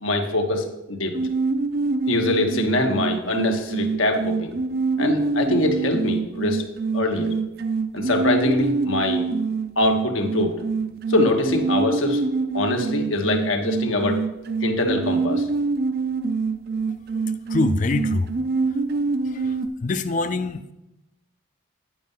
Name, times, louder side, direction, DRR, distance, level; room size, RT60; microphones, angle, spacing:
voice 1, 0.0-1.2 2.1-4.5 5.0-6.6 6.9-7.3 7.9-9.3 9.8-10.6 11.1-12.2 12.5-14.2 14.6-15.5, left 2 dB, 85° left, 3 dB, 1.3 m, -23 dB
sound 1, 1.1-19.7, right 4 dB, 50° right, 0.4 m, -25 dB
voice 2, 17.1-18.3 18.7-18.8 19.2-20.7, left 3 dB, 40° left, 10 dB, 0.4 m, -26 dB
9.7 x 5.5 x 5.5 m, 0.92 s
head